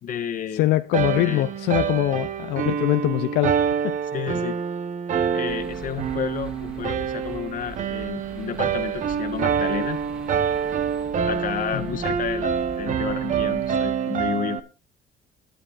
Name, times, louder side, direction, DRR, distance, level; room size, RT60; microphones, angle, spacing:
voice 1, 0.0-0.6 1.2-1.4 4.1-4.6 5.3-10.0 11.3-14.6, left 9 dB, 50° left, 1.5 m, -31 dB
voice 2, 0.5-4.0 11.7-12.0, left 16 dB, 85° left, 0.5 m, -23 dB
sound 1, 0.9-14.6, right 7 dB, 50° right, 1.1 m, -26 dB
sound 2, 5.5-13.8, right 1 dB, 5° right, 2.0 m, -43 dB
22.0 x 10.0 x 2.5 m
cardioid pair, 110°, 17 cm